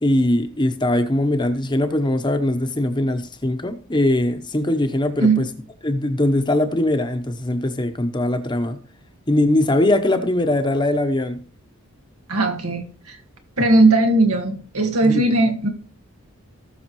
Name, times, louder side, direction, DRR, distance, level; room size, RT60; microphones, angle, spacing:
voice 1, 0.0-5.5 5.8-8.8 9.3-11.4 15.0-15.3, left 1 dB, 20° left, 7 dB, 0.9 m, -21 dB
voice 2, 12.3-13.2 13.6-15.7, right 2 dB, 85° right, 5 dB, 1.8 m, -18 dB
18.5 x 6.4 x 3.1 m, 0.42 s
head